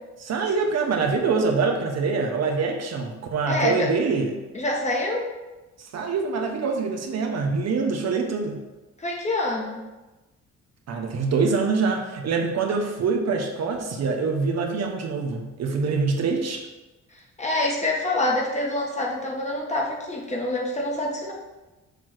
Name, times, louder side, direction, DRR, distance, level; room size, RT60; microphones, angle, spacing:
voice 1, 0.2-4.3 5.9-8.6 10.9-16.6, right 4 dB, 60° right, 2 dB, 1.0 m, -25 dB
voice 2, 3.5-3.9 4.5-5.2 9.0-9.8 17.4-21.3, left 1 dB, 20° left, -2 dB, 1.7 m, -26 dB
6.8 x 3.1 x 6.0 m, 1.1 s
cardioid pair, 90°, 30 cm